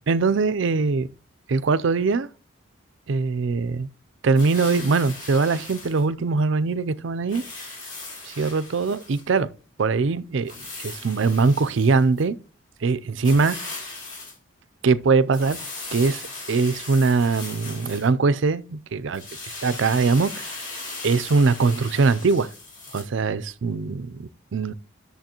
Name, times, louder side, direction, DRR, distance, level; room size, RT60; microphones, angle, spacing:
voice 1, 0.1-1.1 1.5-2.3 3.1-3.9 4.2-7.4 8.4-9.5 9.8-10.5 10.8-12.4 12.8-13.6 14.8-16.2 16.5-19.3 19.6-20.6 21.0-22.5 22.9-24.7, right 4 dB, 65° right, 0.4 m, -22 dB
sound 1, 4.3-6.0 7.3-9.3 10.4-12.2 13.2-14.4 15.3-18.1 19.1-23.0, left 3 dB, 40° left, 4.6 m, -38 dB
10.5 x 6.8 x 2.9 m
head